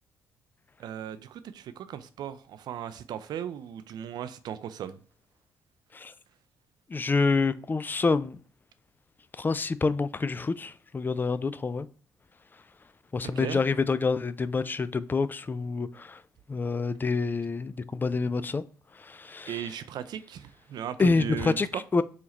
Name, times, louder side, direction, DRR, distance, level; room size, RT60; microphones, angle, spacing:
voice 1, 0.8-5.0 13.4-13.6 19.5-21.8, right 9 dB, 55° right, 0.4 m, -37 dB
voice 2, 6.9-8.4 9.4-11.9 13.1-16.2 16.5-18.6 19.0-19.5 21.0-21.7 21.9-22.0, left 4 dB, 25° left, 0.3 m, -27 dB
4.9 x 2.8 x 3.0 m
hypercardioid pair, 45°, 8 cm